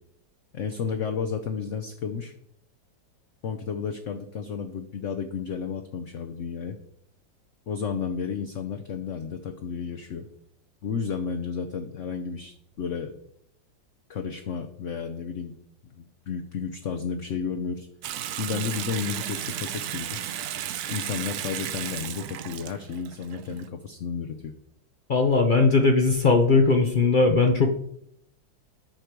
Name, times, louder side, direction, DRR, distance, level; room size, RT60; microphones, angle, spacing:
voice 1, 0.5-2.3 3.4-6.8 7.7-10.3 10.8-13.1 14.1-15.6 15.8-17.9 18.4-20.2 20.9-24.5, left 6 dB, 60° left, 5 dB, 0.8 m, -32 dB
Water tap faucet / Sink (filling or washing) / Bathtub (filling or washing), 18.0-23.7, right 11 dB, 65° right, 1.0 m, -34 dB
voice 2, 25.1-27.7, left 3 dB, 80° left, 4 dB, 0.4 m, -19 dB
10.0 x 6.6 x 4.6 m, 0.72 s
omnidirectional pair, 2.0 m